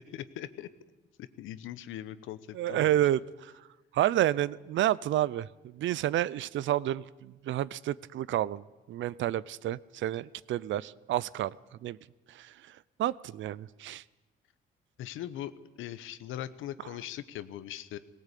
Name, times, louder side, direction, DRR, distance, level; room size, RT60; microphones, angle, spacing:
voice 1, 0.1-0.7 1.2-3.0 15.0-18.0, left 12 dB, 90° left, 14 dB, 1.0 m, -40 dB
voice 2, 2.5-3.5 3.9-11.6 11.8-12.0 12.3-12.7 13.0-14.0, right 13 dB, 70° right, 21 dB, 0.6 m, -30 dB
18.5 x 18.0 x 8.4 m, 1.1 s
cardioid pair, 90°, 20 cm